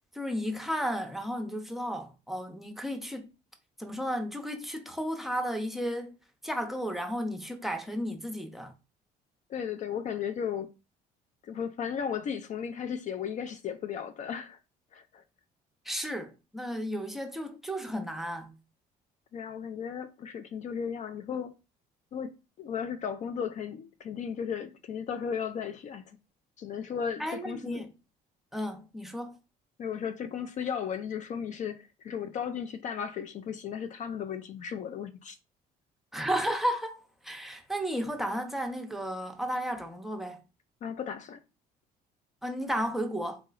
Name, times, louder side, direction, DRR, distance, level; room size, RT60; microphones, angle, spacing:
voice 1, 0.1-3.3 3.8-6.2 6.4-8.7 15.8-18.6 27.2-27.9 28.5-29.4 36.1-40.4 42.4-43.4, equal, ahead, 0.6 m, -33 dB
voice 2, 9.5-10.7 11.4-14.6 14.9-15.2 19.3-21.5 22.1-26.2 26.6-27.9 29.8-35.4 40.8-41.4, left 7 dB, 45° left, 0.4 m, -35 dB
3.9 x 2.9 x 2.4 m
cardioid pair, 110°, 17 cm